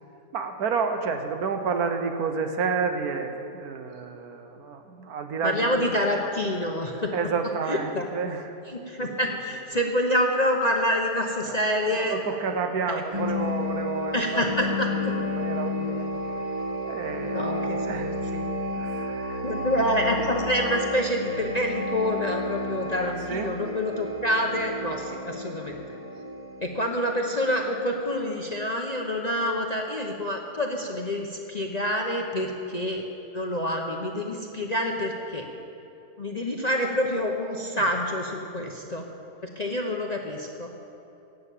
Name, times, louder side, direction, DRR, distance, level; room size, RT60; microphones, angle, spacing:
voice 1, 0.3-5.9 7.1-8.5 9.0-9.2 11.4-11.6 11.9-16.1 16.8-18.4 18.8-19.5 23.2-23.6 32.4-32.5 37.8-37.9 38.6-38.7, right 5 dB, 70° right, 6 dB, 1.4 m, -30 dB
voice 2, 5.4-7.1 7.7-8.0 8.9-12.2 12.9-13.0 14.1-15.1 17.3-18.4 19.4-25.8 26.6-33.0 33.3-35.5 36.2-39.0 39.6-40.7, left 1 dB, 35° left, 1 dB, 0.7 m, -27 dB
sound 1, 13.1-28.6, left 1 dB, 25° right, 1.0 m, -32 dB
17.0 x 6.8 x 8.4 m, 2.9 s
omnidirectional pair, 1.7 m